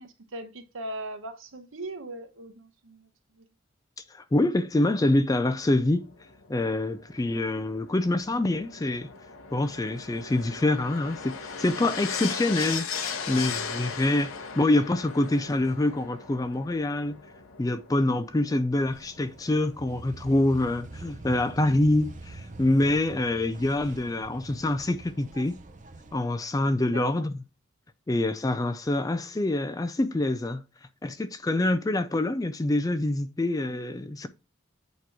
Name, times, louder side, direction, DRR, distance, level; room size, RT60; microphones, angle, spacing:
voice 1, 0.0-3.1 3.4-3.5 18.5-18.6 26.9-27.3, right 1 dB, 70° right, 1.0 m, -40 dB
voice 2, 4.1-6.1 6.5-9.1 9.5-12.9 13.3-17.2 17.6-25.6 26.1-27.4 28.1-30.6 31.0-34.3, left 2 dB, 15° left, 0.3 m, -26 dB
sound 1, 5.5-21.9 23.0-23.1, left 6 dB, 75° left, 0.9 m, -39 dB
sound 2, 18.7-26.2, right 2 dB, 35° right, 0.6 m, -45 dB
8.2 x 3.0 x 4.6 m
head